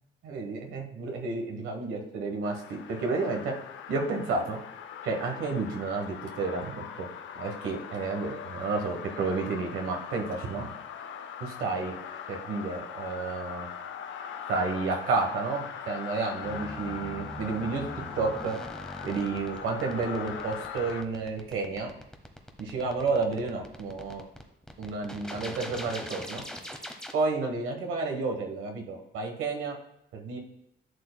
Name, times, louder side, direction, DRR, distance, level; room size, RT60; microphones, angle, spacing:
voice 1, 0.2-3.4 3.9-4.6 5.0-7.1 7.4-10.7 11.4-11.9 12.3-13.7 14.5-17.8 18.2-18.6 19.0-21.9 22.6-24.2 24.8-26.4 27.1-29.8 30.1-30.4, right 3 dB, 85° right, 2 dB, 1.3 m, -31 dB
sound 1, 2.4-21.0, left 8 dB, 70° left, 0.6 m, -41 dB
sound 2, 16.4-27.1, equal, 5° left, 1.0 m, -41 dB
11.0 x 6.7 x 2.3 m, 0.76 s
cardioid pair, 90°, 20 cm